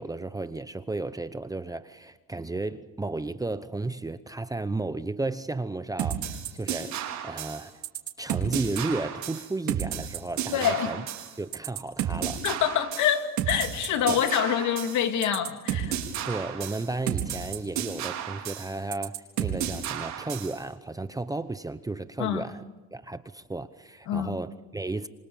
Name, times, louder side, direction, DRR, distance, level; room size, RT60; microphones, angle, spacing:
voice 1, 0.0-7.8 8.2-11.0 11.4-12.4 14.1-14.2 16.2-22.6 22.9-25.1, right 2 dB, 10° right, 0.9 m, -33 dB
sound 1, 6.0-20.6, right 9 dB, 60° right, 4.1 m, -32 dB
voice 2, 10.5-11.0 12.4-16.0 22.2-22.5 24.1-24.4, left 9 dB, 60° left, 2.8 m, -26 dB
28.0 x 25.0 x 7.1 m
cardioid pair, 110°, 33 cm